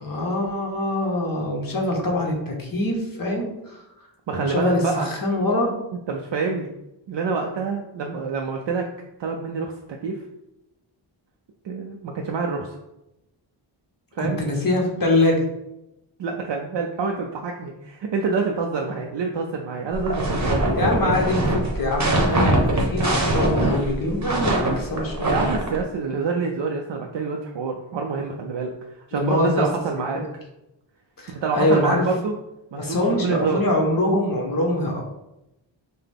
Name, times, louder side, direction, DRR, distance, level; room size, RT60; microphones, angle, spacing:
voice 1, 0.0-3.8 4.3-5.7 14.2-15.4 20.7-21.4 21.7-25.3 29.1-29.6 31.2-32.1 32.8-35.0, left 1 dB, 45° left, 0 dB, 1.1 m, -23 dB
voice 2, 4.3-5.1 6.1-6.7 7.1-8.9 9.2-9.7 10.0-10.2 11.6-12.8 14.1-14.4 16.2-21.3 25.3-30.2 31.3-32.3 32.7-33.7, right 4 dB, 65° right, 1 dB, 0.5 m, -27 dB
sound 1, 19.9-25.8, right 1 dB, 35° right, 0.9 m, -22 dB
5.7 x 2.2 x 3.4 m, 0.91 s
wide cardioid pair, 120°, 47 cm